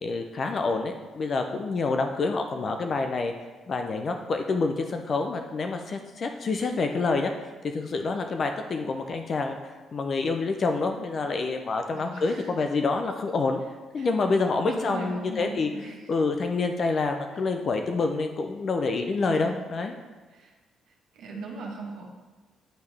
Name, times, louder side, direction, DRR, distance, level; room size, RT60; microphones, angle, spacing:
voice 1, 0.0-3.3 3.7-7.3 7.6-9.6 9.9-13.6 13.9-15.7 16.1-20.0, left 3 dB, 50° left, 5 dB, 0.4 m, -27 dB
voice 2, 11.9-12.5 14.0-14.1 14.6-16.0 19.3-19.4 20.3-20.5 21.1-22.1, right 2 dB, 85° right, -2 dB, 1.2 m, -38 dB
10.0 x 3.5 x 3.3 m, 1.3 s
cardioid pair, 90°, 0 cm